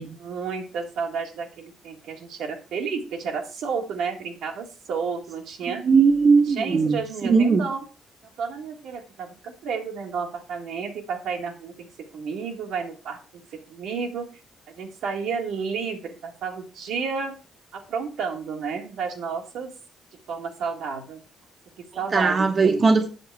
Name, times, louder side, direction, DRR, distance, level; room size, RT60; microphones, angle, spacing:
voice 1, 0.1-5.8 6.5-7.9 8.4-11.9 12.1-14.3 14.7-17.4 17.7-19.7 20.3-21.2 21.8-22.8, right 5 dB, 80° right, 1.9 m, -31 dB
voice 2, 5.8-7.7 22.1-23.1, right 4 dB, 40° right, 1.0 m, -19 dB
7.7 x 6.9 x 4.7 m
cardioid pair, 90°, 0 cm